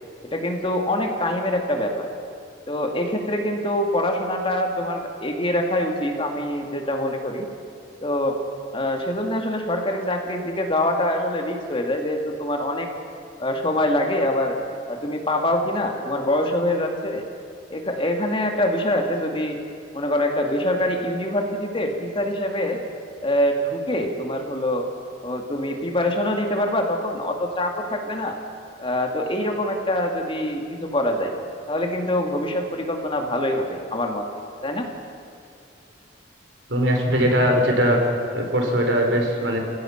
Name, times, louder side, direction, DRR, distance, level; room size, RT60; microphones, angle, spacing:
voice 1, 0.2-2.1 2.7-7.5 8.0-8.4 8.7-12.9 13.4-14.6 14.9-17.2 17.7-19.6 19.9-22.8 23.2-24.9 25.2-28.4 28.8-31.3 31.7-34.2 34.6-34.9, left 1 dB, 30° left, 3 dB, 2.3 m, -24 dB
voice 2, 36.7-38.0 38.3-39.6, equal, 80° right, 2 dB, 4.0 m, -20 dB
30.0 x 16.0 x 5.9 m, 2.6 s
head